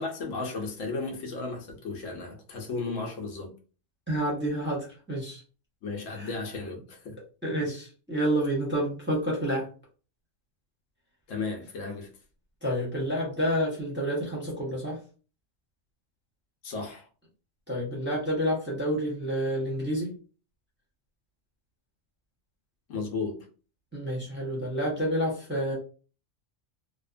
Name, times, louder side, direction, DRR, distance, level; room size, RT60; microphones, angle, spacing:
voice 1, 0.0-3.5 5.8-7.2 7.6-7.7 11.3-12.1 16.6-17.1 22.9-23.5, left 3 dB, 80° left, 1.1 m, -34 dB
voice 2, 4.1-5.4 6.1-6.3 7.4-9.7 12.6-15.0 17.7-20.1 23.9-25.7, equal, 10° right, 0.8 m, -29 dB
2.8 x 2.1 x 2.4 m
omnidirectional pair, 1.3 m